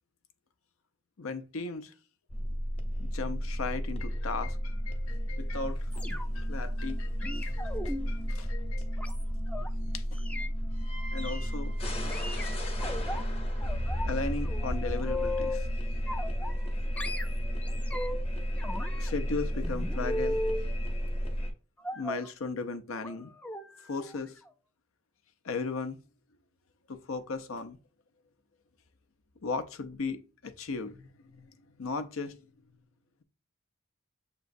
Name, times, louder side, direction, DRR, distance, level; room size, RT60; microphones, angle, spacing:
voice 1, 1.2-1.9 3.0-5.9 6.3-9.0 9.9-10.0 11.1-11.7 14.1-15.7 19.0-20.4 21.9-23.3 23.8-24.4 25.4-26.0 26.9-27.8 29.4-31.5 31.8-32.4, left 4 dB, 80° left, 0.6 m, -36 dB
sound 1, 2.3-21.5, equal, 30° left, 0.8 m, -32 dB
sound 2, 5.9-6.5 7.2-9.7 10.1-10.5 11.2-11.5 12.1-13.2 13.6-14.2 14.5-15.7 16.1-16.7 17.0-18.3 18.6-20.7 21.8-22.3 23.0-23.2 23.4-23.6 24.0-24.2 24.5-24.6, left 1 dB, 5° left, 0.3 m, -37 dB
6.8 x 3.0 x 2.5 m
head